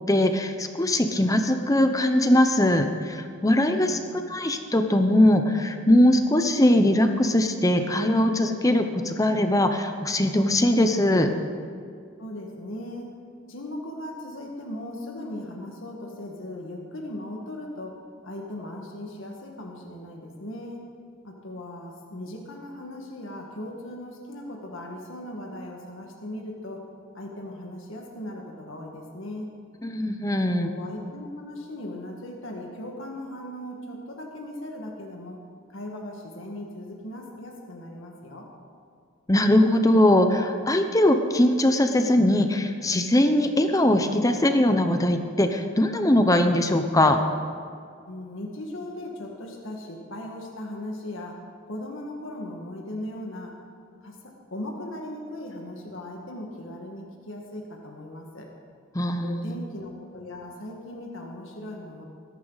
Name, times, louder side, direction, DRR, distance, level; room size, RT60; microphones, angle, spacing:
voice 1, 0.1-4.0 4.3-11.3 29.8-30.7 39.3-47.2 58.9-59.6, left 1 dB, 15° left, 7 dB, 0.7 m, -21 dB
voice 2, 3.8-4.3 12.2-13.1 13.5-18.0 18.2-20.8 21.2-26.8 27.1-29.5 30.6-35.4 35.7-38.5 48.1-51.4 51.7-53.5 54.0-54.2 54.5-58.5 59.2-62.0, left 1 dB, 70° left, 0 dB, 1.8 m, -38 dB
20.0 x 11.5 x 4.0 m, 2.3 s
head